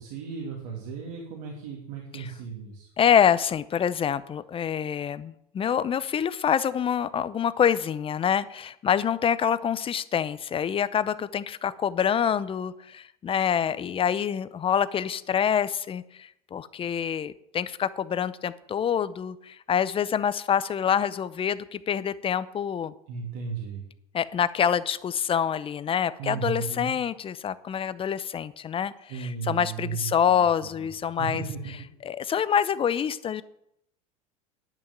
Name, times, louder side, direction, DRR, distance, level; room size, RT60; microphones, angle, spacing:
voice 1, 0.0-2.9 23.1-23.9 26.2-26.9 29.1-30.4 31.2-31.9, right 6 dB, 75° right, -1 dB, 2.6 m, -35 dB
voice 2, 3.0-22.9 24.1-31.4 32.0-33.4, left 8 dB, 30° left, 16 dB, 0.6 m, -26 dB
10.5 x 6.4 x 7.4 m, 0.76 s
supercardioid pair, 105°, 19 cm